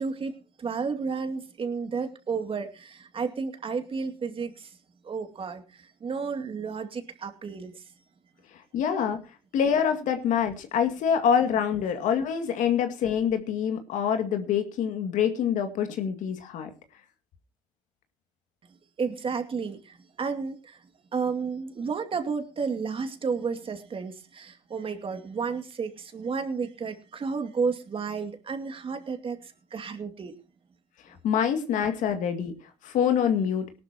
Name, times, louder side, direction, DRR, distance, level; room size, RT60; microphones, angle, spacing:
voice 1, 0.0-4.8 5.0-7.9 19.0-20.8 21.1-30.4, right 5 dB, 40° right, 7 dB, 2.4 m, -32 dB
voice 2, 8.7-9.2 9.5-16.7 31.2-32.5 32.8-33.7, left 8 dB, 70° left, 7 dB, 2.2 m, -25 dB
18.5 x 12.0 x 2.9 m, 0.32 s
supercardioid pair, 70°, 14 cm